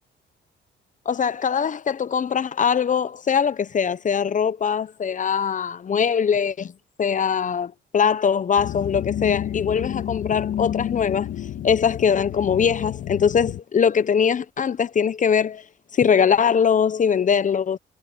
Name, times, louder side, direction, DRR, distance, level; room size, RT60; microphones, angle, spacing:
voice 1, 1.1-6.7 7.0-11.3 11.6-15.6 15.9-17.8, left 7 dB, 40° left, 0.9 m, -21 dB
sound 1, 8.6-13.6, left 11 dB, 75° left, 2.7 m, -30 dB
cardioid pair, 90°, 20 cm